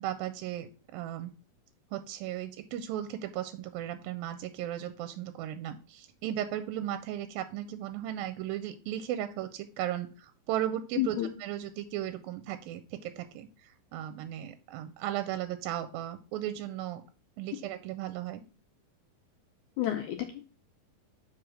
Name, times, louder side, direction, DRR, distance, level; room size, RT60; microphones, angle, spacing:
voice 1, 0.0-1.3 1.9-17.0 17.4-18.4, right 12 dB, 85° right, 10 dB, 2.3 m, -36 dB
voice 2, 11.0-11.3 19.8-20.4, left 12 dB, 85° left, 6 dB, 1.7 m, -30 dB
5.1 x 4.8 x 6.2 m, 0.36 s
omnidirectional pair, 4.2 m